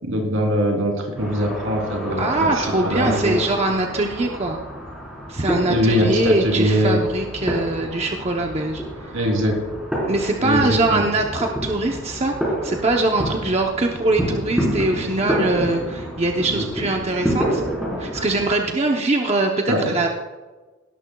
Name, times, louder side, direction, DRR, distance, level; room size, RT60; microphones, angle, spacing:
voice 1, 0.0-3.4 5.7-7.0 9.1-9.6 10.4-11.1 16.4-16.7 17.2-17.4 19.7-20.1, equal, 80° right, 1 dB, 3.3 m, -22 dB
sound 1, 1.2-18.5, equal, 5° right, 4.2 m, -29 dB
voice 2, 2.2-4.6 5.3-9.1 10.1-12.3 12.6-17.6 18.0-20.1, right 2 dB, 30° right, 1 dB, 0.8 m, -22 dB
17.5 x 12.5 x 2.3 m, 1.2 s
head